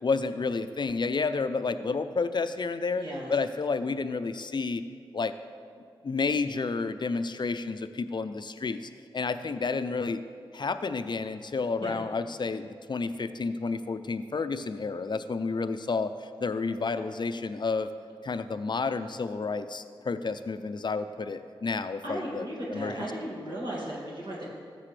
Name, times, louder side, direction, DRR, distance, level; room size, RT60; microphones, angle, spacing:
voice 1, 0.0-3.0 3.3-4.8 5.1-5.3 6.0-10.2 10.5-17.9 18.2-22.4 22.7-23.1, left 4 dB, 50° left, 11 dB, 0.5 m, -30 dB
voice 2, 3.0-3.4 11.8-12.0 16.8-16.9 22.0-24.5, right 1 dB, 55° right, -6 dB, 2.2 m, -36 dB
13.5 x 6.8 x 3.3 m, 2.2 s
cardioid pair, 45°, 10 cm